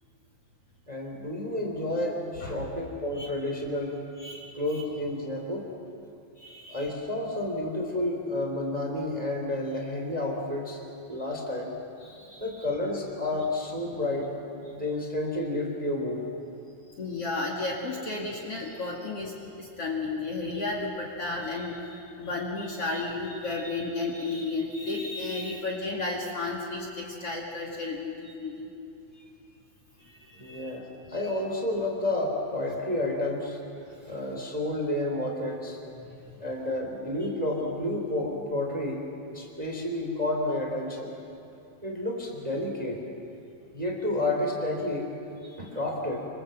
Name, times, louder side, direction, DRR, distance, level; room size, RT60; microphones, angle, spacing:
voice 1, 0.9-4.0 4.5-5.7 6.7-10.8 11.1-11.7 12.4-14.3 14.7-16.2 30.3-33.6 34.1-35.8 36.4-39.0 39.3-41.1 41.8-43.0 43.7-45.1 45.6-46.3, left 1 dB, 10° right, 1 dB, 2.8 m, -30 dB
voice 2, 2.4-2.7 3.1-3.3 4.2-4.8 6.4-6.9 12.0-12.7 17.0-28.7 29.1-29.2 30.0-30.8 31.2-31.4 33.9-34.1 36.0-36.4 45.4-45.6, left 3 dB, 45° left, -2 dB, 2.9 m, -34 dB
26.5 x 25.5 x 7.8 m, 2.7 s
omnidirectional pair, 4.3 m